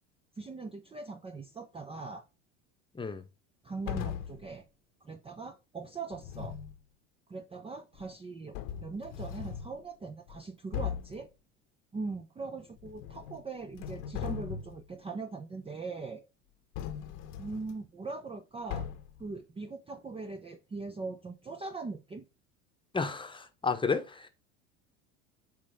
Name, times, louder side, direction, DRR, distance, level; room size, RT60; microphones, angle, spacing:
voice 1, 0.4-2.2 3.6-4.7 5.0-6.6 7.3-11.3 11.9-16.2 17.4-18.9 19.2-22.3, right 4 dB, 15° right, 0.6 m, -41 dB
sound 1, 3.9-4.5 6.1-6.8 8.0-8.1 8.5-9.7 10.3-10.4 10.7-11.2 12.8-13.4 13.7-14.8 16.7-17.7 18.7-19.2, left 9 dB, 65° left, 1.1 m, -38 dB
voice 2, 22.9-24.3, left 4 dB, 15° left, 1.0 m, -32 dB
8.4 x 3.0 x 5.0 m
hypercardioid pair, 85°, 38 cm